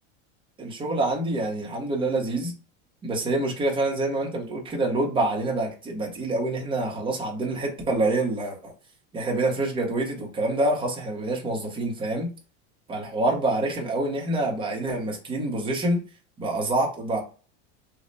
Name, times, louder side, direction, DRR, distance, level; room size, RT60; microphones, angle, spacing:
voice 1, 0.6-2.5 3.0-8.7 9.1-12.3 12.9-16.0 16.4-17.2, right 2 dB, 15° right, -1 dB, 0.8 m, -26 dB
3.1 x 2.1 x 3.9 m, 0.35 s
supercardioid pair, 160°, 36 cm